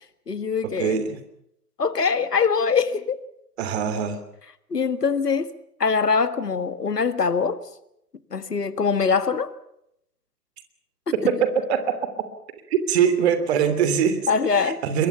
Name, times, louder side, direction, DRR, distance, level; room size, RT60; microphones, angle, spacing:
voice 1, 0.3-1.0 1.8-3.2 4.7-5.5 5.8-7.6 8.3-9.5 11.2-11.4 14.3-14.8, left 5 dB, 80° left, 13 dB, 1.8 m, -23 dB
voice 2, 0.8-1.2 3.6-4.2 11.1-12.0 12.7-14.2 14.5-15.1, right 7 dB, 40° right, 11 dB, 3.2 m, -22 dB
26.0 x 22.5 x 5.8 m, 0.77 s
figure-of-eight pair, 120°, 47 cm